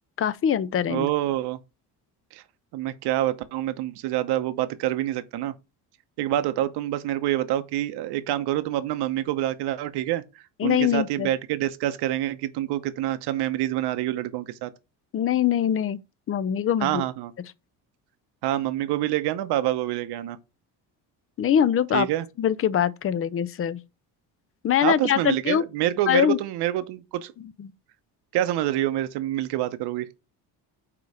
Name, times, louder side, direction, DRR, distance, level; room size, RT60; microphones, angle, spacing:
voice 1, 0.2-1.1 10.6-11.3 15.1-16.0 16.3-17.0 21.4-22.1 22.4-23.8 24.6-25.6 26.1-26.4 27.6-27.7, left 9 dB, 35° left, 0.5 m, -23 dB
voice 2, 0.9-1.6 2.3-2.4 2.7-5.6 6.2-14.7 16.8-17.3 18.4-20.4 21.9-22.2 24.8-27.3 28.3-30.1, right 13 dB, 80° right, 0.9 m, -27 dB
8.5 x 3.1 x 4.8 m
cardioid pair, 125°, 39 cm